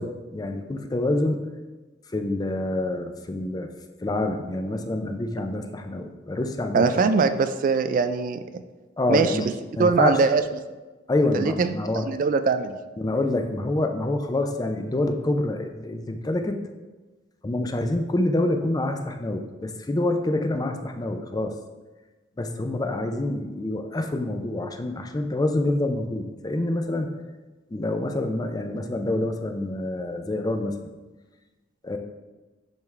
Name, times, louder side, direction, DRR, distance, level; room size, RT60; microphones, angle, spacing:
voice 1, 0.0-1.4 2.1-3.7 4.0-7.1 9.0-9.5 9.8-10.3 11.1-12.1 13.0-16.6 17.4-21.5 22.4-27.1 27.7-30.8 31.8-32.0, left 2 dB, 20° left, 5 dB, 0.4 m, -27 dB
voice 2, 6.7-8.4 9.1-9.5 9.8-10.4 11.3-11.7 12.1-12.8, right 4 dB, 45° right, 10 dB, 0.3 m, -21 dB
10.5 x 3.5 x 3.3 m, 1.2 s
head